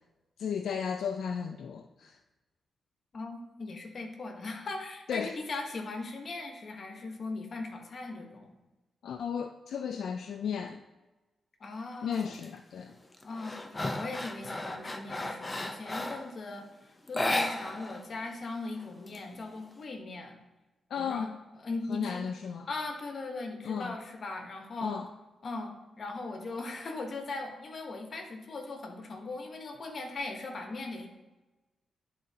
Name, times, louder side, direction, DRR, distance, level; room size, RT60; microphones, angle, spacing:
voice 1, 0.4-2.2 5.1-5.4 9.0-10.8 12.0-12.9 20.9-21.3 21.9-22.7 23.6-23.9 24.8-25.1, left 7 dB, 80° left, 0.3 m, -34 dB
voice 2, 3.1-8.5 11.6-12.3 13.2-20.4 21.0-21.3 21.6-22.3 22.7-25.0 25.4-31.1, left 3 dB, 50° left, 1.0 m, -39 dB
sound 1, 12.1-12.5 12.9-16.3 17.1-18.0 18.3-18.4 18.8-19.7, left 1 dB, 20° left, 0.5 m, -34 dB
10.0 x 3.8 x 2.8 m
cardioid pair, 115°, 0 cm